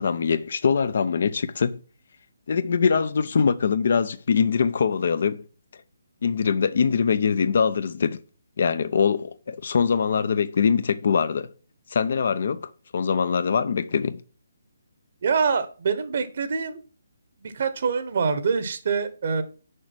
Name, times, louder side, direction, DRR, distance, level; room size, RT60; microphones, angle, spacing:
voice 1, 0.0-1.8 2.5-5.4 6.2-8.2 8.6-11.5 11.9-14.2, left 6 dB, 55° left, 0.6 m, -23 dB
voice 2, 15.2-16.8 17.4-19.4, right 5 dB, 50° right, 1.1 m, -25 dB
6.6 x 5.1 x 6.1 m
figure-of-eight pair, 145°, 0 cm